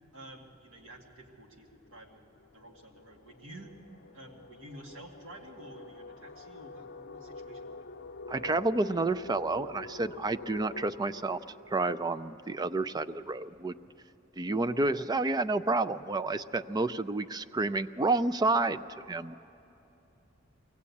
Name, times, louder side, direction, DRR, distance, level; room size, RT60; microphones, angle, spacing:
voice 1, 0.1-3.8 4.1-7.8, right 1 dB, 85° right, 1 dB, 2.1 m, -50 dB
sound 1, 0.8-1.0 1.3-12.9, left 3 dB, 55° left, 0.7 m, -48 dB
voice 2, 8.3-11.4 11.7-13.7 14.4-19.3, right 2 dB, 20° right, 14 dB, 0.4 m, -30 dB
23.0 x 17.0 x 8.4 m, 3.0 s
head